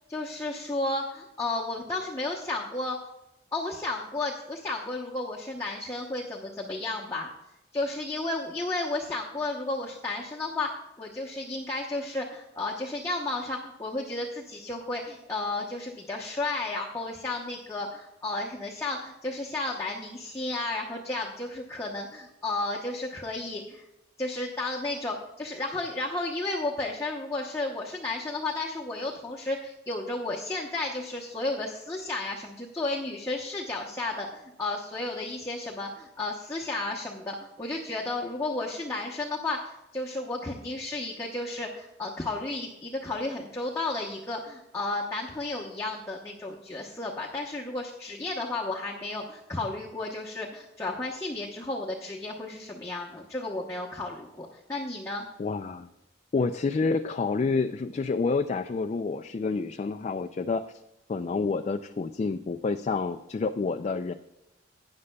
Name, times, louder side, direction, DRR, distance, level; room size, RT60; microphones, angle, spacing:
voice 1, 0.1-3.0 3.5-7.3 7.7-10.7 11.0-23.8 24.2-55.3, left 2 dB, 15° left, -3 dB, 0.9 m, -33 dB
voice 2, 55.4-55.9 56.3-60.8 61.1-64.1, left 4 dB, 35° left, 7 dB, 0.3 m, -28 dB
16.0 x 9.7 x 2.3 m, 0.91 s
head